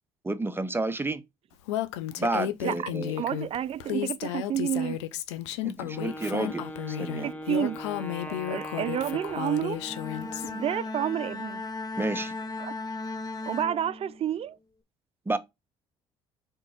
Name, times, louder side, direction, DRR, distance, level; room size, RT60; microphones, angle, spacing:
voice 1, 0.2-1.2 2.2-3.2 5.6-7.3 12.0-12.3 15.3-15.4, right 2 dB, 15° right, 0.9 m, -30 dB
Female speech woman speaking, 1.7-10.5, left 13 dB, 90° left, 0.6 m, -33 dB
voice 2, 3.2-5.0 7.2-7.8 8.3-9.8 10.4-11.6 12.6-12.7 13.5-14.6, right 10 dB, 45° right, 0.5 m, -30 dB
Wind instrument woodwind instrument, 5.9-10.7, left 1 dB, 10° left, 1.2 m, -40 dB
Bowed string instrument, 9.7-14.4, left 3 dB, 25° left, 0.9 m, -36 dB
4.5 x 3.8 x 5.5 m
hypercardioid pair, 65°, 14 cm